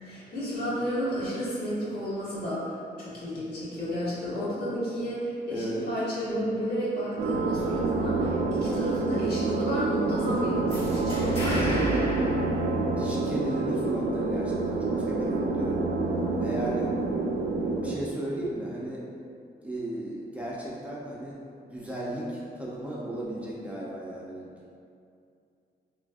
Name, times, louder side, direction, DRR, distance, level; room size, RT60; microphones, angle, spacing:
voice 1, 0.0-11.8, equal, 70° left, -10 dB, 1.5 m, -31 dB
voice 2, 5.5-5.9 11.4-11.8 13.0-15.8 16.4-16.9 17.8-19.0 19.6-21.4 21.7-24.5, right 1 dB, 10° right, -6 dB, 0.5 m, -35 dB
sound 1, 7.2-18.0, right 3 dB, 80° right, 0.4 m, -27 dB
sound 2, 10.7-13.4, equal, 30° left, 1.0 m, -35 dB
3.8 x 3.3 x 2.4 m, 2.4 s
cardioid pair, 115°, 17 cm